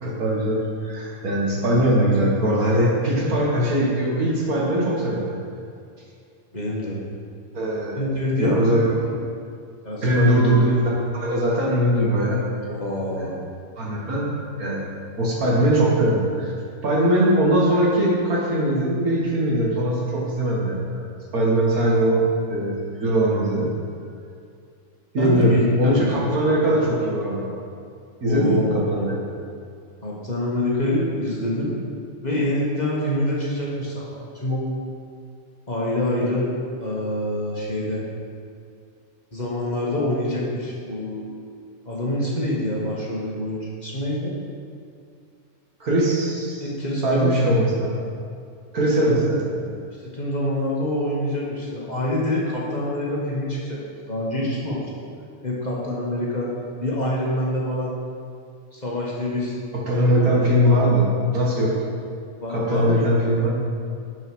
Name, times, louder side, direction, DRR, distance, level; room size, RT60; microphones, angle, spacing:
voice 1, 0.0-5.3 7.5-7.9 8.4-9.0 10.0-10.7 11.1-12.4 13.2-13.3 13.8-14.3 14.6-14.8 15.2-16.5 16.8-20.8 21.3-22.2 22.5-23.7 25.1-25.5 25.8-27.4 28.2-28.6 28.9-29.2 45.8-46.7 47.0-47.9 48.7-49.7 59.7-61.0 61.3-61.7 62.5-63.5, right 1 dB, 75° right, -4 dB, 2.2 m, -21 dB
voice 2, 6.5-7.0 8.0-8.6 9.8-10.8 12.7-13.3 25.2-26.3 26.6-26.8 28.2-29.2 30.0-31.7 32.2-34.7 35.7-36.5 36.8-38.0 39.3-41.3 41.8-44.3 46.6-47.4 48.9-49.2 50.0-54.9 55.4-56.5 56.8-58.0 58.7-59.5 60.0-60.4 62.4-63.5, left 1 dB, 30° left, -5 dB, 1.5 m, -26 dB
9.1 x 5.6 x 6.3 m, 2.4 s
omnidirectional pair, 1.6 m